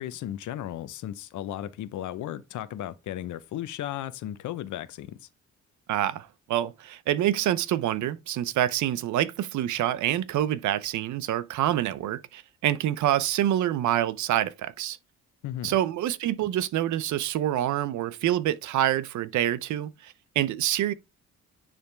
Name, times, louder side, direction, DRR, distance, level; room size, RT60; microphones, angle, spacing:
voice 1, 0.0-5.3 15.4-15.8, left 12 dB, 75° left, 0.8 m, -35 dB
voice 2, 5.9-15.0 15.6-20.9, right 12 dB, 75° right, 0.7 m, -26 dB
9.7 x 3.5 x 3.4 m
cardioid pair, 90°, 30 cm